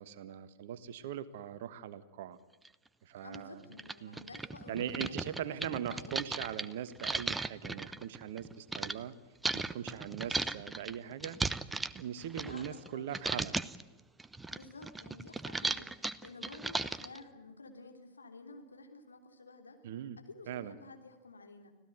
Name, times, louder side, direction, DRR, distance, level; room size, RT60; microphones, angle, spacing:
voice 1, 0.0-2.4 3.0-3.6 4.0-4.2 4.7-9.1 9.5-11.4 11.9-13.6 19.8-20.2 20.5-20.7, right 10 dB, 55° right, 14 dB, 1.5 m, -41 dB
sound 1, 2.7-2.8 3.3-3.4 3.7-9.0 9.4-12.9 13.1-13.8 14.2-17.2, right 3 dB, 10° right, 0.8 m, -36 dB
voice 2, 3.2-6.2 12.4-13.1 14.5-19.8 20.2-21.7, left 3 dB, 75° left, 5 dB, 3.3 m, -51 dB
25.5 x 16.5 x 9.3 m, 1.1 s
figure-of-eight pair, 90°, 0 cm